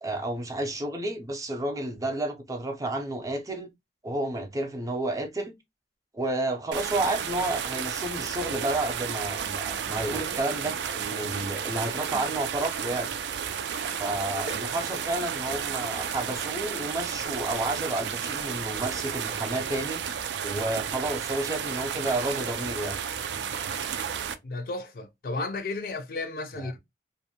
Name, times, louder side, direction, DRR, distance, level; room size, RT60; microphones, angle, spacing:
voice 1, 0.0-3.7 4.0-5.5 6.1-13.1 14.0-20.0 20.4-23.0 26.5-26.8, right 2 dB, 20° right, 0.5 m, -31 dB
sound 1, 6.7-24.4, right 7 dB, 80° right, 0.4 m, -32 dB
voice 2, 24.4-26.8, left 3 dB, 55° left, 0.5 m, -33 dB
2.5 x 2.1 x 2.7 m
head